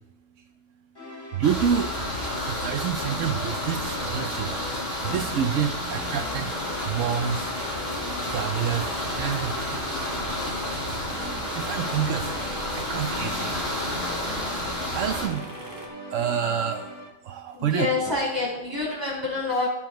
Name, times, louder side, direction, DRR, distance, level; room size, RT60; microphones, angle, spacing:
sound 1, 0.9-17.1, equal, 20° left, 1.9 m, -41 dB
voice 1, 1.3-1.9 2.5-4.5 5.0-6.5 6.8-7.6 8.0-9.6 10.4-10.6 10.9-11.1 11.5-12.3 12.8-13.6 14.7-15.5 16.1-16.9 17.2-17.9, right 8 dB, 80° right, 7 dB, 1.0 m, -28 dB
sound 2, 1.4-15.3, left 1 dB, 35° left, 3.8 m, -31 dB
sound 3, 5.8-15.9, right 1 dB, 45° right, 1.8 m, -42 dB
voice 2, 17.5-19.7, left 3 dB, 20° right, -6 dB, 4.3 m, -27 dB
16.5 x 7.2 x 3.0 m, 1.0 s
omnidirectional pair, 1.3 m